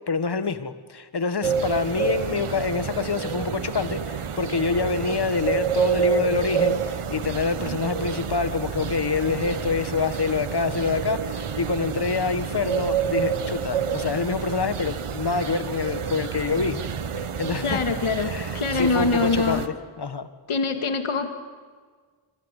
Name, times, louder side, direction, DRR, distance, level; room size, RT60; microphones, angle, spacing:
voice 1, 0.1-16.8 17.4-17.8 18.2-20.3, left 4 dB, 50° left, 12 dB, 1.7 m, -26 dB
sound 1, 1.4-19.7, right 7 dB, 80° right, 1.4 m, -28 dB
voice 2, 17.6-19.6 20.5-21.3, left 4 dB, 80° left, 6 dB, 2.2 m, -24 dB
27.0 x 24.5 x 8.4 m, 1.5 s
wide cardioid pair, 80°, 50 cm